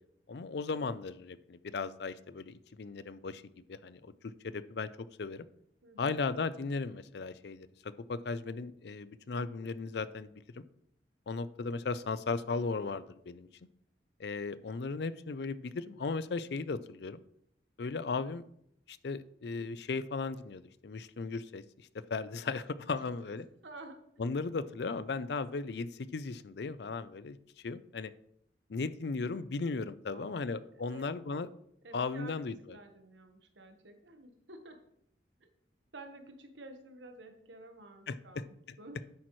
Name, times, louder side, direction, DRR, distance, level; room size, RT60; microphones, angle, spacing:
voice 1, 0.3-5.5 6.0-10.3 10.5-10.6 11.3-13.5 14.2-17.2 17.8-18.4 18.9-21.6 22.1-23.5 24.2-27.4 27.6-28.1 28.7-31.5 31.9-32.8 38.1-38.4, left 4 dB, 65° left, 16 dB, 0.5 m, -36 dB
voice 2, 5.8-6.2 23.3-23.4 23.6-24.0 30.1-31.1 31.8-34.8 35.4-35.5 35.9-39.0, right 2 dB, 85° right, 6 dB, 1.3 m, -51 dB
10.0 x 8.4 x 3.2 m, 0.73 s
head